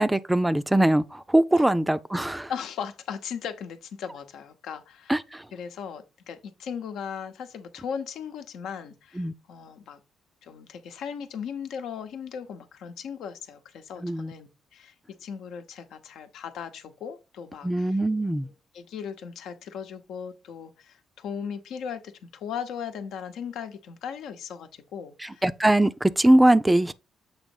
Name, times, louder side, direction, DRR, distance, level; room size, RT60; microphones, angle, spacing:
voice 1, 0.0-2.5 5.1-5.4 9.2-9.3 14.0-14.3 17.6-18.5 25.2-26.9, right 1 dB, 10° right, 0.4 m, -22 dB
voice 2, 2.5-5.2 5.5-10.0 10.4-18.0 18.4-25.4, left 7 dB, 80° left, 0.9 m, -38 dB
7.3 x 3.0 x 5.3 m
cardioid pair, 90°, 0 cm